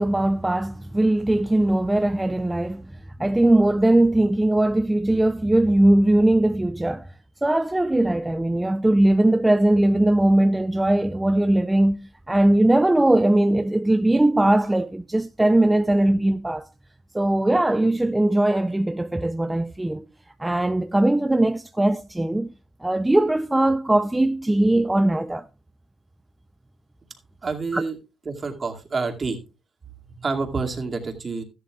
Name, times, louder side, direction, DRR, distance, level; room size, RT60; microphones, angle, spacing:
voice 1, 0.0-2.9 3.2-7.1 7.4-16.7 17.1-20.0 20.4-22.5 22.8-25.4 27.7-27.8, right 1 dB, 10° right, 0.5 m, -20 dB
voice 2, 27.4-28.0 28.3-29.4 30.1-31.4, right 4 dB, 35° right, 2.3 m, -28 dB
13.5 x 11.5 x 2.4 m
cardioid pair, 90°, 0 cm